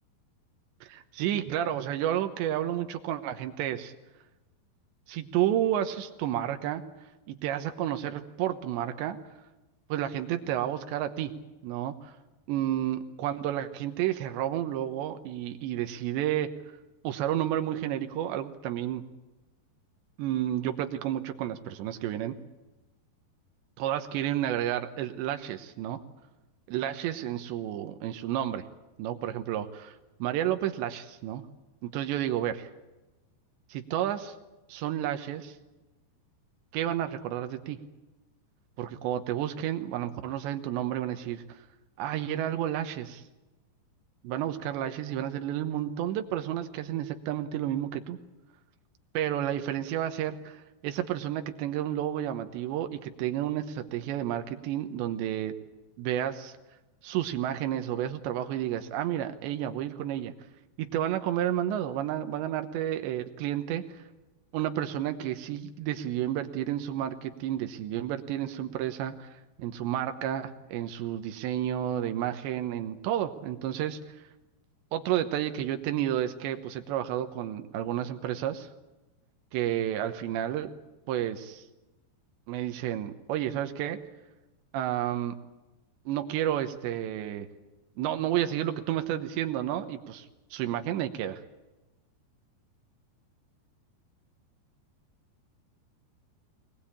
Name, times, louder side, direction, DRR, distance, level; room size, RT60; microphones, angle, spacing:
voice 1, 0.8-3.9 5.1-6.8 7.3-9.2 9.9-11.3 11.6-12.2 12.5-16.5 17.0-19.0 20.2-22.4 23.8-26.0 26.7-28.6 29.0-29.9 30.2-31.4 31.8-32.7 33.7-34.3 34.7-35.5 36.7-37.8 38.8-41.6 42.0-43.2 44.2-48.2 49.1-55.5 56.0-56.5 57.0-60.3 60.8-64.0 64.5-74.0 74.9-78.7 79.5-80.7 81.1-81.6 82.5-84.0 84.7-85.3 86.1-87.5 88.0-91.4, right 11 dB, 85° right, 7 dB, 3.3 m, -31 dB
22.0 x 20.5 x 8.7 m, 1.1 s
omnidirectional pair, 5.0 m